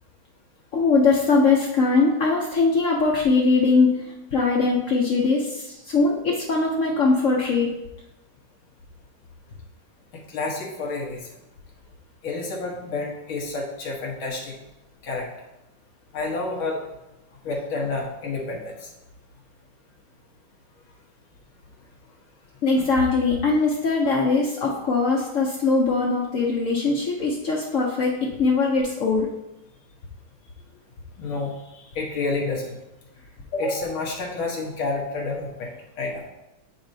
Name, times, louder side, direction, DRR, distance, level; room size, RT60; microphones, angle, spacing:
voice 1, 0.7-4.0 4.3-7.7 22.6-29.3, left 4 dB, 90° left, -2 dB, 0.6 m, -21 dB
voice 2, 10.1-11.3 12.2-14.5 15.0-15.3 16.1-16.8 17.4-18.9 31.2-32.8 33.5-36.2, left 3 dB, 70° left, -1 dB, 2.0 m, -29 dB
9.8 x 4.3 x 2.7 m, 0.97 s
omnidirectional pair, 2.3 m